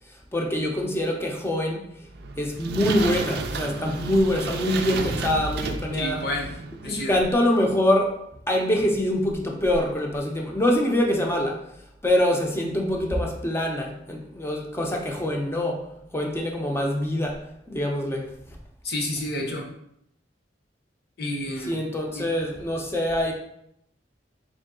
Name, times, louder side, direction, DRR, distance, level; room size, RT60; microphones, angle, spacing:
voice 1, 0.3-1.8 2.4-6.2 6.9-8.2 8.5-11.6 12.0-15.8 16.1-17.4 17.7-18.3 21.7-23.3, left 1 dB, 15° left, 1 dB, 0.6 m, -24 dB
sound 1, 2.1-7.0, right 4 dB, 60° right, 0.4 m, -32 dB
voice 2, 5.9-6.5 6.8-7.1 18.8-19.6 21.2-21.8 22.1-22.3, left 1 dB, 60° left, 0 dB, 0.9 m, -29 dB
3.8 x 3.0 x 3.7 m, 0.76 s
head